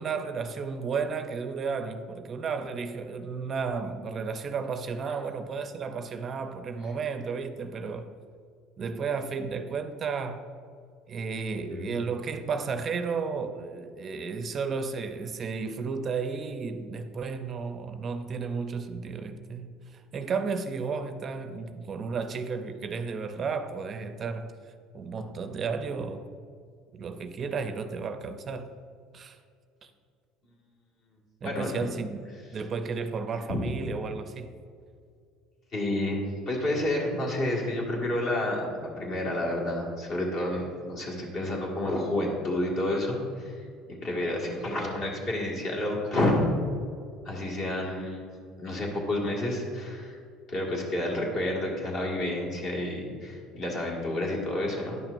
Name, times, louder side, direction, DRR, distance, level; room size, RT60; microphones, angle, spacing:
voice 1, 0.0-8.1 8.8-10.4 11.1-24.5 24.9-26.3 26.9-28.7 29.1-29.4 29.8-29.9 31.4-32.3 32.5-34.5, right 5 dB, 35° right, 0.5 m, -33 dB
voice 2, 31.4-31.9 33.5-33.6 35.7-43.7 44.0-46.4 47.3-48.3 48.6-50.2 50.5-55.0, left 1 dB, 45° left, 1.9 m, -30 dB
10.5 x 5.9 x 2.6 m
supercardioid pair, 115°, 0 cm